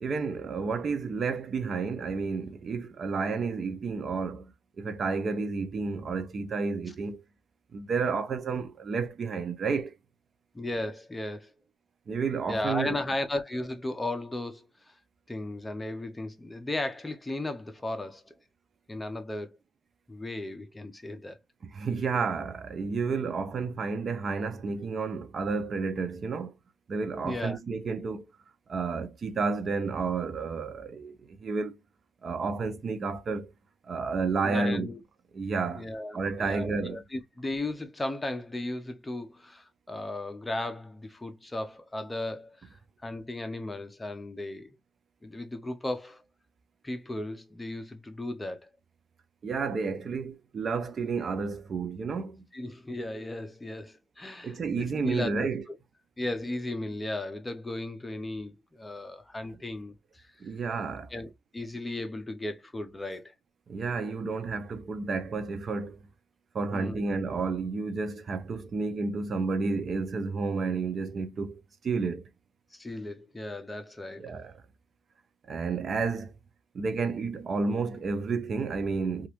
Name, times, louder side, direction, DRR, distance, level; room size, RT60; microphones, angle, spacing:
voice 1, 0.0-7.2 7.7-9.9 12.1-13.0 21.6-26.5 26.9-28.2 28.7-31.8 32.2-33.5 33.9-34.9 35.3-35.9 36.1-37.0 49.4-52.4 54.4-55.7 60.4-61.1 63.7-66.0 66.5-72.2 74.2-74.6 75.5-76.3 76.7-79.3, right 4 dB, 45° right, 0.6 m, -31 dB
voice 2, 10.5-11.5 12.5-14.7 15.3-18.3 18.9-19.6 20.1-21.4 27.2-27.6 34.4-35.0 35.7-42.5 43.0-44.8 45.2-46.2 46.8-48.6 52.5-55.8 56.2-60.3 61.1-63.3 66.7-67.1 72.7-74.3, left 1 dB, 15° left, 0.7 m, -35 dB
3.0 x 2.4 x 2.9 m
cardioid pair, 90°, 0 cm